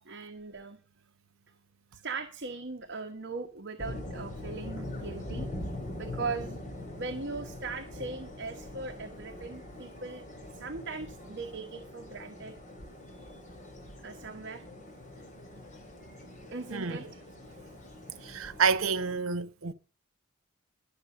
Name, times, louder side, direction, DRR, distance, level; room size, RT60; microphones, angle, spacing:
voice 1, 0.0-0.8 1.9-5.5 6.0-6.6 7.0-10.3 10.5-12.6 13.1-13.4 14.0-14.6 16.5-17.2, right 4 dB, 55° right, 1.2 m, -39 dB
sound 1, 3.8-19.1, left 1 dB, 35° left, 2.9 m, -43 dB
voice 2, 16.7-17.1 18.2-19.7, right 5 dB, 90° right, 0.9 m, -29 dB
11.5 x 6.7 x 6.5 m
head